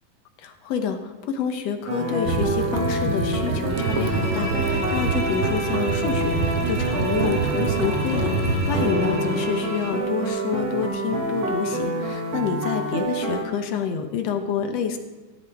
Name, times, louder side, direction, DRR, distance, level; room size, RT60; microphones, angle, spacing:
voice 1, 0.4-15.0, left 6 dB, 65° left, 6 dB, 1.9 m, -28 dB
sound 1, 1.9-13.4, right 1 dB, 55° right, 2.9 m, -27 dB
sound 2, 2.3-8.9, right 6 dB, 75° right, 1.4 m, -27 dB
Bowed string instrument, 3.7-10.1, left 1 dB, 15° right, 0.5 m, -34 dB
16.0 x 11.0 x 3.6 m, 1.2 s
omnidirectional pair, 3.5 m